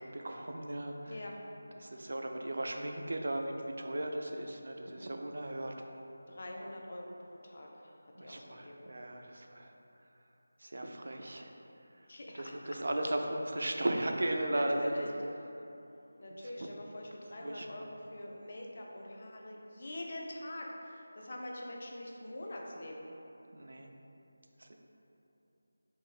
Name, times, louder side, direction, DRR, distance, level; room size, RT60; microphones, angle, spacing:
voice 1, 0.0-1.2 1.7-5.7 8.1-9.7 10.6-11.5 11.9-14.9 16.4-16.7 17.4-17.9 23.5-23.9 24.6-24.8, right 1 dB, 50° right, 3 dB, 0.3 m, -36 dB
voice 2, 1.1-1.4 6.3-7.1 7.4-8.9 12.1-12.5 14.5-15.1 16.2-23.1, left 1 dB, 35° left, -1 dB, 0.4 m, -44 dB
3.6 x 2.5 x 4.6 m, 2.9 s
figure-of-eight pair, 180°, 0 cm